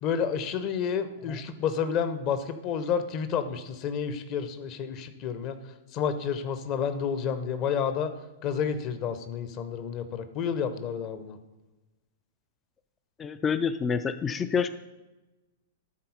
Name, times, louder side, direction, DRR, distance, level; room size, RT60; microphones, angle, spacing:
voice 1, 0.0-5.6 5.9-8.1 8.4-11.4, left 7 dB, 35° left, 11 dB, 0.7 m, -30 dB
voice 2, 13.2-14.7, left 6 dB, 20° left, 12 dB, 0.3 m, -27 dB
11.5 x 4.2 x 5.5 m, 1.1 s
figure-of-eight pair, 100°, 0 cm